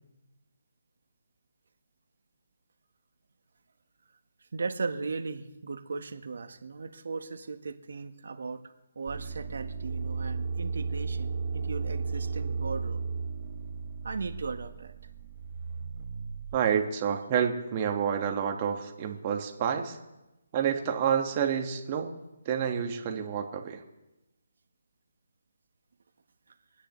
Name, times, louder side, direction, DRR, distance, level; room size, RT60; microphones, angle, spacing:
voice 1, 4.5-8.6 8.9-13.0 14.0-14.9, right 4 dB, 70° right, 7 dB, 1.3 m, -37 dB
sound 1, 9.1-16.6, right 4 dB, 50° right, 0.9 m, -34 dB
voice 2, 16.5-20.0 20.5-22.2 22.4-23.8, right 8 dB, 30° right, 4 dB, 1.6 m, -29 dB
26.0 x 9.8 x 3.2 m, 0.99 s
hypercardioid pair, 155°, 0 cm